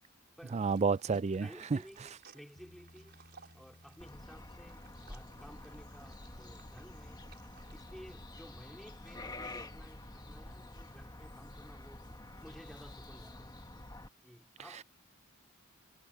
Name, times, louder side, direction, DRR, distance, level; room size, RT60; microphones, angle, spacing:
voice 1, 0.5-1.8, right 4 dB, 30° right, 0.4 m, -30 dB
sound 1, 0.5-8.0, right 6 dB, 50° right, 4.3 m, -62 dB
voice 2, 1.4-3.2 3.5-7.2 7.7-12.1 12.4-13.5 14.2-14.8, equal, ahead, 3.6 m, -55 dB
Bass guitar, 2.6-6.0, left 1 dB, 35° left, 1.5 m, -61 dB
sound 2, 4.0-14.1, left 2 dB, 20° left, 1.8 m, -49 dB
head